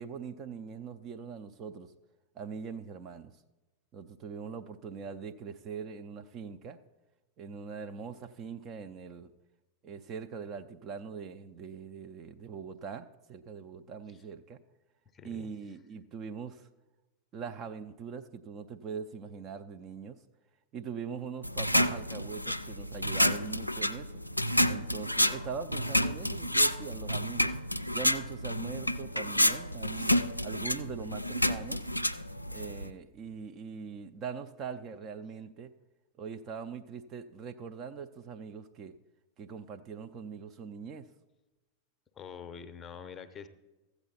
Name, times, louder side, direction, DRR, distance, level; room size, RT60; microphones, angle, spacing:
voice 1, 0.0-1.9 2.3-3.3 3.9-6.8 7.4-9.3 9.8-14.6 15.2-16.7 17.3-20.2 20.7-24.1 24.7-27.6 27.9-31.9 32.5-35.7 36.2-39.0 39.4-41.1, right 6 dB, 30° right, 8 dB, 0.5 m, -42 dB
voice 2, 15.1-15.5 42.2-43.5, left 7 dB, 25° left, 10 dB, 0.7 m, -46 dB
sound 1, 21.4-32.9, left 1 dB, 90° left, 0.3 m, -29 dB
13.5 x 8.1 x 4.1 m, 1.1 s
figure-of-eight pair, 90°, 0 cm